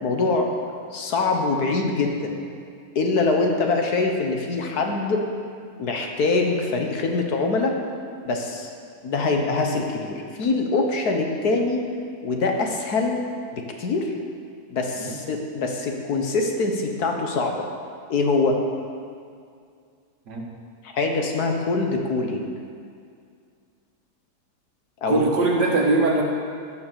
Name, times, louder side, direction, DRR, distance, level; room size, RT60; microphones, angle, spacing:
voice 1, 0.0-0.5 0.9-2.3 3.0-5.2 5.8-7.8 8.2-8.7 9.0-11.8 12.2-13.2 13.5-14.1 14.7-17.7 18.1-18.6 20.8-22.5 25.0-25.3, left 3 dB, 70° left, 2 dB, 1.8 m, -24 dB
voice 2, 25.1-26.2, right 2 dB, 90° right, 0 dB, 2.3 m, -21 dB
15.0 x 6.8 x 6.9 m, 2.3 s
omnidirectional pair, 1.8 m